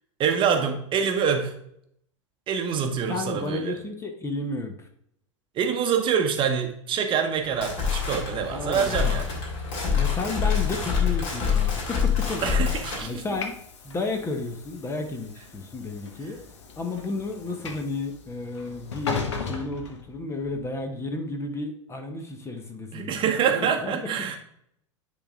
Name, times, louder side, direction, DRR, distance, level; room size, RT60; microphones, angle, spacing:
voice 1, 0.2-1.5 2.5-3.8 5.6-9.3 12.4-13.2 22.9-24.4, right 7 dB, 30° right, 4 dB, 1.0 m, -25 dB
voice 2, 3.1-4.9 8.5-9.2 10.0-12.4 13.0-13.6 13.8-16.4 16.8-24.0, left 3 dB, 15° left, 5 dB, 0.9 m, -32 dB
sound 1, 7.4-13.0, left 7 dB, 40° left, 2.7 m, -26 dB
Train / Sliding door, 11.3-20.6, left 5 dB, 65° left, 1.0 m, -38 dB
9.9 x 3.7 x 3.6 m, 0.72 s
figure-of-eight pair, 90°, 16 cm